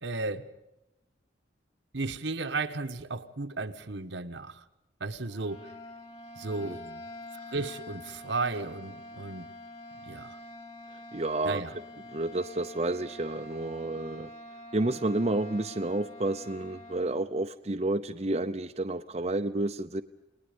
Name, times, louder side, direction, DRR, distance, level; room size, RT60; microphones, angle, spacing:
voice 1, 0.0-0.5 1.9-4.6 5.0-5.7 6.4-6.8 7.5-9.5 10.0-10.4 11.4-11.7, right 3 dB, 75° right, 1.3 m, -34 dB
sound 1, 5.3-17.1, left 1 dB, 30° left, 2.6 m, -46 dB
voice 2, 11.1-11.6 12.1-14.3 14.7-20.0, right 2 dB, 35° right, 0.7 m, -30 dB
29.5 x 20.0 x 5.2 m
head